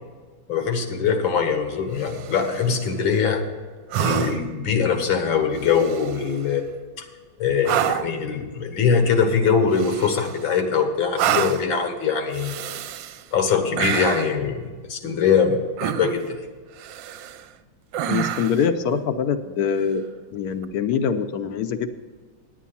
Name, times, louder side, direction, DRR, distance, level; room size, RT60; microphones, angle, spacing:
voice 1, 0.5-3.4 4.0-6.6 7.0-7.1 7.4-12.5 13.3-16.4, left 6 dB, 85° left, 5 dB, 2.1 m, -22 dB
sound 1, 2.0-2.7 3.9-4.6 5.6-6.3 7.6-8.2 9.7-10.5 11.2-11.7 12.3-13.2 13.8-14.4 15.8-16.3 16.8-17.5 17.9-18.7 20.5-20.7, right 11 dB, 75° right, 1.2 m, -27 dB
voice 2, 18.1-20.0 20.3-21.9, left 7 dB, 65° left, 9 dB, 1.0 m, -24 dB
10.5 x 8.4 x 5.7 m, 1.5 s
omnidirectional pair, 2.1 m